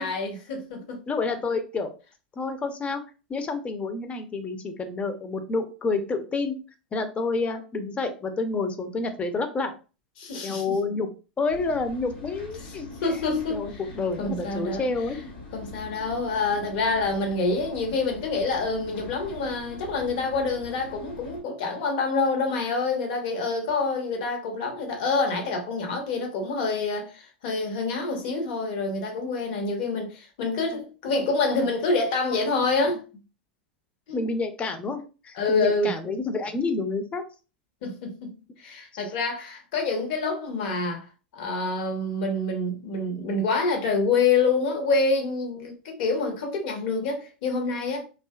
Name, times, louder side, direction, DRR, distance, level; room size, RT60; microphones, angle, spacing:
voice 1, 0.0-1.0 10.2-10.8 12.6-12.7 13.0-13.8 14.2-14.8 15.2-15.3 15.5-33.0 34.1-34.2 35.3-35.9 37.8-38.3 38.6-41.0 41.3-48.0, left 3 dB, 60° left, 0.9 m, -27 dB
voice 2, 1.1-1.9 2.4-3.0 3.3-6.5 6.9-9.7 10.4-11.1 11.4-13.2 13.5-15.2 34.1-37.2, left 3 dB, 25° left, 0.5 m, -29 dB
sound 1, 11.5-21.4, left 2 dB, 85° left, 1.3 m, -43 dB
2.7 x 2.4 x 2.3 m
hypercardioid pair, 90°, 5 cm